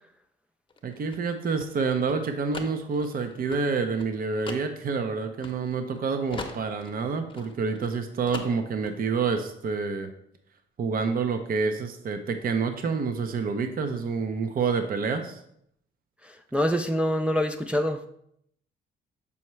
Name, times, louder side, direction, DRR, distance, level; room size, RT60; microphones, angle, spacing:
sound 1, 0.7-6.0 6.3-8.0 8.3-9.0, left 3 dB, 25° left, 0.8 m, -40 dB
voice 1, 0.8-10.1 10.8-15.4, right 5 dB, 45° right, 7 dB, 0.6 m, -28 dB
voice 2, 16.2-18.1, equal, 5° right, 5 dB, 0.3 m, -26 dB
7.0 x 4.4 x 3.1 m, 0.72 s
cardioid pair, 90°, 20 cm